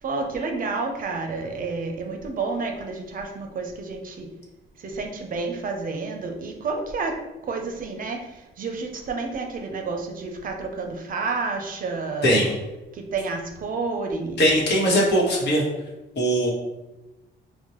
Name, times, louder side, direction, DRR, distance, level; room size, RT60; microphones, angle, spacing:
voice 1, 0.0-4.3 4.8-12.4 12.9-14.4, right 4 dB, 45° right, 3 dB, 0.5 m, -30 dB
voice 2, 12.2-12.5 14.4-15.6 16.2-16.5, equal, 60° left, -3 dB, 1.1 m, -20 dB
4.3 x 2.1 x 3.0 m, 1.0 s
cardioid pair, 130°, 20 cm